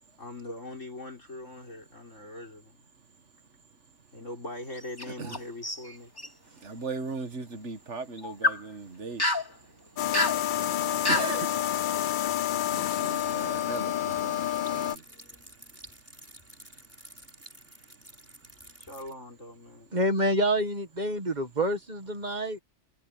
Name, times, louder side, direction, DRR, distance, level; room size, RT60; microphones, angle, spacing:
voice 1, 0.2-2.9 4.1-6.1 18.8-19.9, left 1 dB, 90° left, 6.5 m, -42 dB
sound 1, 4.7-5.4 5.6-6.3 8.2-8.6 9.2-9.5 10.1-10.4 11.0-11.3, left 2 dB, 20° left, 3.1 m, -27 dB
voice 2, 6.6-9.2 11.1-11.5 12.4-15.0, right 4 dB, 70° right, 2.0 m, -38 dB
sound 2, 10.0-15.0, left 11 dB, 60° left, 0.5 m, -29 dB
sound 3, 13.1-19.1, equal, 10° right, 5.5 m, -51 dB
voice 3, 19.9-22.6, right 1 dB, 35° right, 1.8 m, -27 dB
omnidirectional pair, 1.2 m